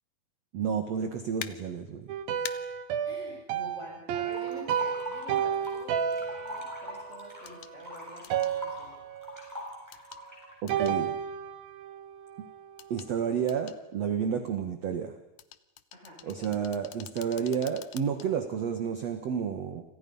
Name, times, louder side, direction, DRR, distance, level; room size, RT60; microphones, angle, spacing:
voice 1, 0.5-2.1 10.6-11.2 12.9-15.1 16.2-19.8, right 7 dB, 55° right, 6 dB, 2.2 m, -31 dB
sound 1, 1.4-1.5 2.4-2.6 4.6-4.7 7.5-7.7 8.2-8.5 9.9-10.2 10.7-11.0 12.8-13.1 13.5-13.8 15.4-18.3 18.7-18.8, left 12 dB, 70° left, 2.3 m, -44 dB
sound 2, 2.1-7.9 8.3-9.5 10.7-12.9, right 8 dB, 70° right, 2.9 m, -32 dB
voice 2, 3.0-9.0 15.9-16.6, left 1 dB, 15° left, 0 dB, 8.2 m, -48 dB
sound 3, 4.3-5.8 6.1-10.5, left 1 dB, 5° right, 7.4 m, -42 dB
30.0 x 27.0 x 5.6 m, 0.96 s
omnidirectional pair, 4.7 m